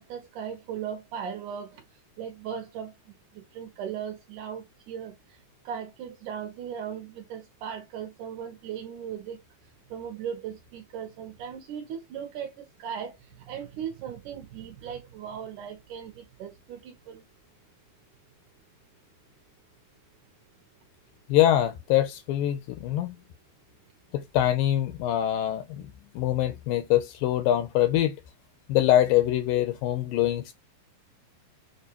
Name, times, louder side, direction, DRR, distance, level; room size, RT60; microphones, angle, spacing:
voice 1, 0.0-1.8 2.2-2.9 3.5-5.1 5.7-9.4 9.9-13.1 13.5-17.2, right 8 dB, 75° right, 2.0 m, -37 dB
voice 2, 21.3-23.2 24.1-28.2 28.7-30.5, left 12 dB, 80° left, 2.0 m, -24 dB
6.6 x 2.3 x 2.9 m
omnidirectional pair, 4.3 m